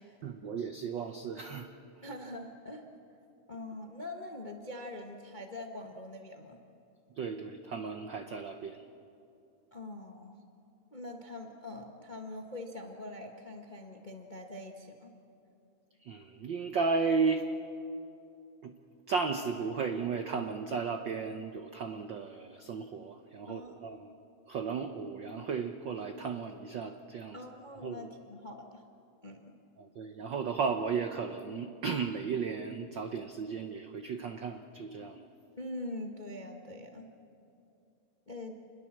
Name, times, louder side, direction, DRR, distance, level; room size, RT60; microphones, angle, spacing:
voice 1, 0.2-1.7 7.1-8.8 16.0-17.5 18.6-18.7 19.1-24.1 24.5-27.4 27.8-28.1 29.8-35.3, right 5 dB, 80° right, 7 dB, 1.0 m, -34 dB
voice 2, 2.0-2.9 3.5-6.6 9.7-10.4 10.9-15.1 23.5-24.1 27.3-28.8 29.2-29.5 35.6-37.1 38.3-38.5, left 1 dB, 40° left, 3 dB, 0.6 m, -43 dB
27.5 x 21.0 x 7.4 m, 2.7 s
omnidirectional pair, 3.4 m